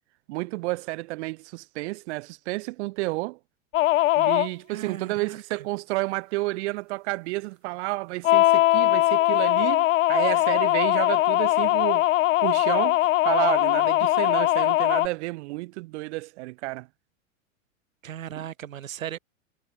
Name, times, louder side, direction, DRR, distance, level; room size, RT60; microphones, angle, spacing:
voice 1, 0.3-3.4 4.2-12.0 12.4-13.0 13.2-16.9, right 22 dB, 60° right, 0.8 m, -30 dB
sound 1, 3.7-4.5 8.2-15.1, left 16 dB, 75° left, 0.8 m, -21 dB
voice 2, 4.7-5.6 18.0-19.2, right 10 dB, 85° right, 4.4 m, -37 dB
hypercardioid pair, 125°, 39 cm